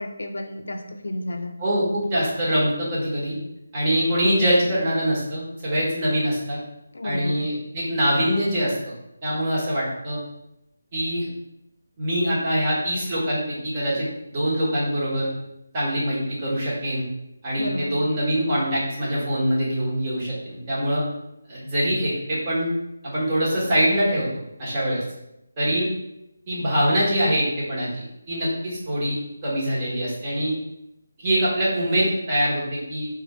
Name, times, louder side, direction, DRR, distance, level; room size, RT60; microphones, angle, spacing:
voice 1, 0.0-1.5 6.9-7.4 17.6-17.9, left 1 dB, 75° left, 5 dB, 0.4 m, -31 dB
voice 2, 1.6-3.3 3.7-6.6 7.0-8.9 9.2-10.2 10.9-11.3 12.0-15.3 15.7-17.0 17.4-21.0 21.5-22.7 23.0-25.0 25.6-25.9 26.5-30.5 31.2-33.1, equal, 25° right, -7 dB, 1.2 m, -24 dB
2.7 x 2.4 x 4.1 m, 0.86 s
figure-of-eight pair, 165°, 0 cm